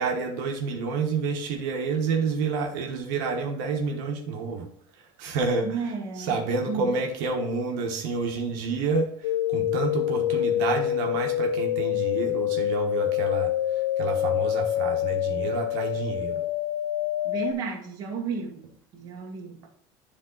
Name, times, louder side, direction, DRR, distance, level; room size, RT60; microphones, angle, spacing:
voice 1, 0.0-4.7 5.2-5.7 6.2-9.1 9.5-13.5 14.0-16.4, right 4 dB, 75° right, 1.3 m, -29 dB
voice 2, 5.6-6.4 6.7-6.9 17.2-18.6 18.9-19.6, right 5 dB, 35° right, 1.6 m, -33 dB
sound 1, 9.2-17.5, left 12 dB, 90° left, 0.5 m, -26 dB
10.0 x 3.7 x 3.9 m
cardioid pair, 165°, 10 cm